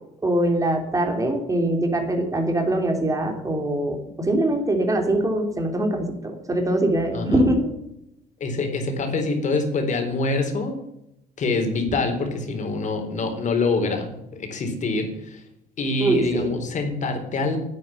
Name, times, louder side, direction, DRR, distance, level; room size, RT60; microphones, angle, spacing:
voice 1, 0.2-6.1 6.5-7.7 16.0-16.5, right 1 dB, 20° right, 3 dB, 3.5 m, -22 dB
voice 2, 7.1-7.5 8.4-10.8 11.4-15.4 15.8-17.6, left 3 dB, 45° left, 4 dB, 4.1 m, -25 dB
11.0 x 9.1 x 8.8 m, 0.81 s
cardioid pair, 110°, 17 cm